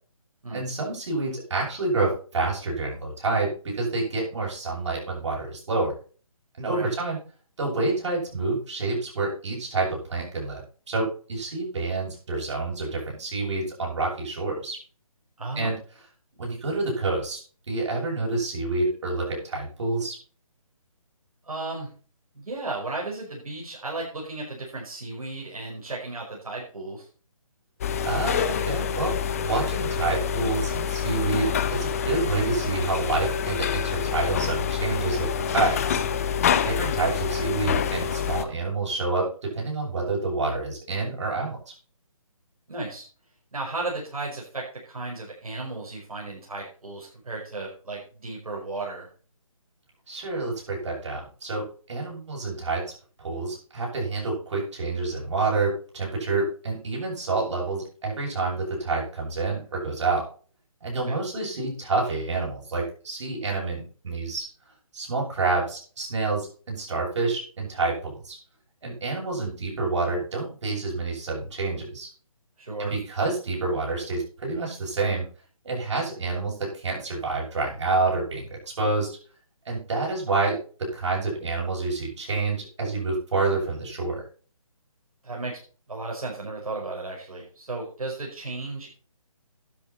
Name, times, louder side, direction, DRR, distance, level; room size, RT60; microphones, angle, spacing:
voice 1, 0.5-6.0 6.6-7.2 7.6-14.8 15.6-15.8 16.4-17.4 17.7-20.2 28.0-29.1 29.4-36.0 36.6-41.6 50.1-52.8 53.2-60.2 60.8-64.5 64.9-68.4 68.8-72.1 72.8-75.3 75.6-79.2 79.7-80.6 80.9-84.2, right 3 dB, 55° right, -2 dB, 7.6 m, -28 dB
voice 2, 15.4-15.7 21.4-21.9 22.3-27.1 42.7-43.0 43.5-49.1 61.0-61.2 72.6-72.9 85.2-85.6 85.9-88.9, right 2 dB, 80° right, -3 dB, 5.5 m, -34 dB
sound 1, 27.8-38.4, left 7 dB, 25° left, 0.7 m, -27 dB
12.0 x 9.3 x 4.3 m, 0.40 s
hypercardioid pair, 160°, 18 cm